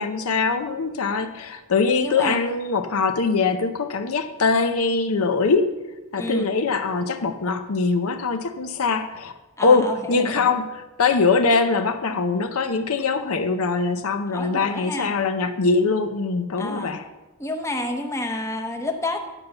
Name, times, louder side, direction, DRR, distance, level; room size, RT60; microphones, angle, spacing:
voice 1, 0.0-5.7 6.1-9.3 9.6-17.0, left 4 dB, 70° left, 8 dB, 0.6 m, -22 dB
voice 2, 2.0-2.4 6.1-6.5 9.6-10.5 14.3-15.1 16.6-16.9 17.4-19.2, left 2 dB, 15° left, 3 dB, 0.8 m, -29 dB
10.0 x 5.3 x 6.8 m, 1.1 s
head